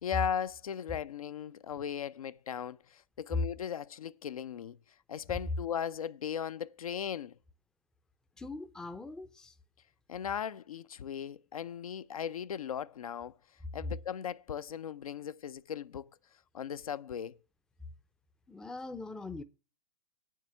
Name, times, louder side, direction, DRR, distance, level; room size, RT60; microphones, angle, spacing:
voice 1, 0.0-4.8 5.1-7.4 10.1-13.4 13.7-16.1 16.5-17.4, left 8 dB, 60° left, 0.6 m, -37 dB
voice 2, 8.4-9.6 18.5-19.4, left 3 dB, 5° left, 0.5 m, -42 dB
9.0 x 7.4 x 7.3 m
figure-of-eight pair, 120°, 21 cm